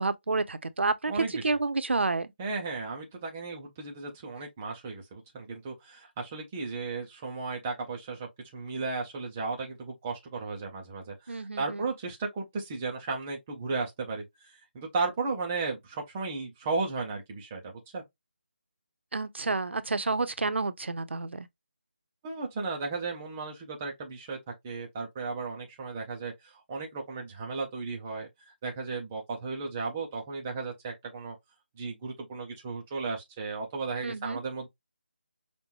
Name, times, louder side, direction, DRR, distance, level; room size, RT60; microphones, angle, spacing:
voice 1, 0.0-1.1 1.4-2.3 11.3-11.9 19.1-21.5 34.0-34.4, right 3 dB, 75° right, 0.6 m, -29 dB
voice 2, 1.1-1.5 2.4-18.0 22.2-24.4 24.6-31.3 31.8-34.7, right 4 dB, 10° right, 0.3 m, -35 dB
5.2 x 2.1 x 2.9 m
figure-of-eight pair, 175°, 6 cm